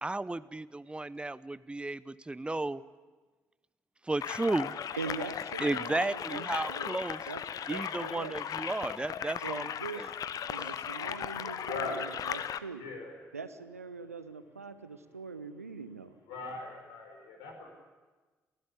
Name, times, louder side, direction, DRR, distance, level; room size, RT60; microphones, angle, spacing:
voice 1, 0.0-2.8 4.0-4.7 5.6-7.2 7.7-10.1 10.6-10.7, right 2 dB, 15° right, 17 dB, 0.8 m, -34 dB
sound 1, 4.2-12.6, left 8 dB, 50° left, 0.9 m, -37 dB
voice 2, 4.9-7.0 7.3-7.4 7.7-8.4 9.4-10.0 10.5-12.9 13.3-16.1, right 5 dB, 90° right, 12 dB, 0.8 m, -42 dB
voice 3, 11.6-12.1 12.8-13.1 16.3-17.7, left 3 dB, 70° left, 3 dB, 5.4 m, -39 dB
28.0 x 16.5 x 8.4 m, 1.3 s
figure-of-eight pair, 45°, 8 cm